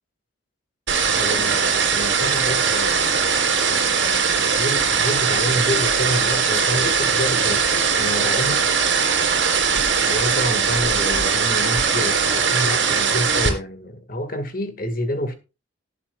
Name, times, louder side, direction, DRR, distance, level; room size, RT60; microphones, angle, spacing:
voice 1, 0.9-8.7 9.7-15.3, equal, 45° left, 2.1 m, -29 dB
sound 1, 0.9-13.5, right 6 dB, 60° right, 3.3 m, -20 dB
19.0 x 7.4 x 2.4 m
head